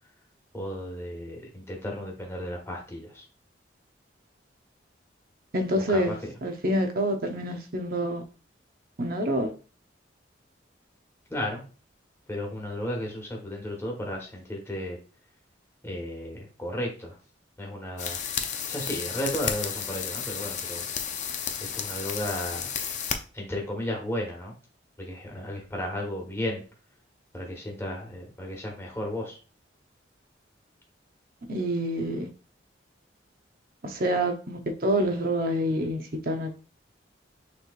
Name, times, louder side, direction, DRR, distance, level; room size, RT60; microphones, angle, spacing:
voice 1, 0.5-3.2 5.9-6.3 11.3-11.6 12.3-15.0 15.8-17.2 17.6-18.2 18.7-20.9 21.7-22.7 23.3-24.5 25.0-26.6 27.3-29.4, left 1 dB, 15° left, 1.2 m, -34 dB
voice 2, 5.5-6.1 6.4-8.2 9.0-9.5 31.5-32.3 33.8-36.6, right 1 dB, 50° right, 0.8 m, -27 dB
sound 1, 18.0-23.2, left 8 dB, 40° left, 0.5 m, -32 dB
6.3 x 3.1 x 2.5 m
head